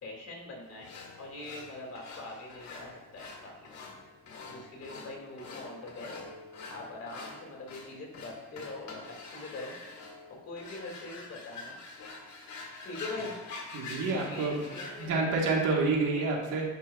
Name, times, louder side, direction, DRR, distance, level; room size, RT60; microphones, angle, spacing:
voice 1, 0.0-0.9 1.2-3.7 4.5-6.2 6.7-8.9 9.3-9.8 10.4-11.8 12.8-13.4 14.1-15.4 16.1-16.2, left 2 dB, 55° left, -1 dB, 2.3 m, -43 dB
sound 1, 0.8-15.1, left 3 dB, 70° left, 1.5 m, -46 dB
voice 2, 13.7-14.7 15.0-16.6, right 3 dB, 80° right, -1 dB, 1.5 m, -28 dB
11.0 x 4.7 x 2.4 m, 1.1 s
cardioid pair, 90°, 30 cm